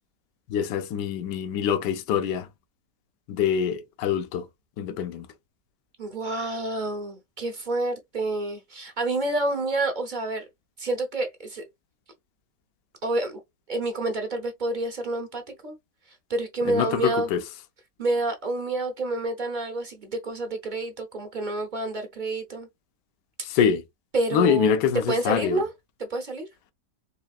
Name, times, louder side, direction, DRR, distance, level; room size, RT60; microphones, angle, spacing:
voice 1, 0.5-2.5 3.3-4.4 4.8-5.3 16.7-17.4 23.4-23.8 24.3-25.6, left 8 dB, 75° left, 1.3 m, -24 dB
voice 2, 6.0-10.4 10.8-11.6 13.0-13.4 13.7-15.7 16.1-17.3 18.0-22.7 24.1-25.7 26.0-26.5, right 2 dB, 40° right, 0.7 m, -28 dB
4.6 x 3.2 x 2.3 m
omnidirectional pair, 1.9 m